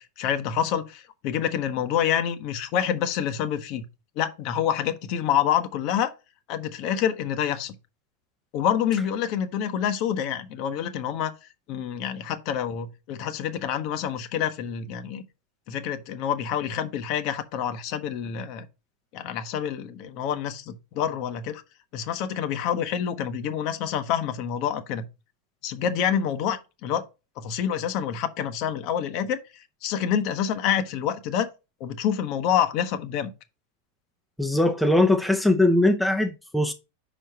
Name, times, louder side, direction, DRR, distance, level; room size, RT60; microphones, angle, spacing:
voice 1, 0.0-3.8 4.2-6.1 6.5-7.8 8.5-11.3 11.7-15.2 15.7-18.7 19.1-21.6 21.9-25.0 25.6-27.0 27.4-29.4 29.8-31.5 31.8-33.3, left 9 dB, 40° left, 0.9 m, -27 dB
voice 2, 34.4-36.7, left 1 dB, 5° left, 0.6 m, -21 dB
5.5 x 5.2 x 4.1 m
figure-of-eight pair, 90°, 0 cm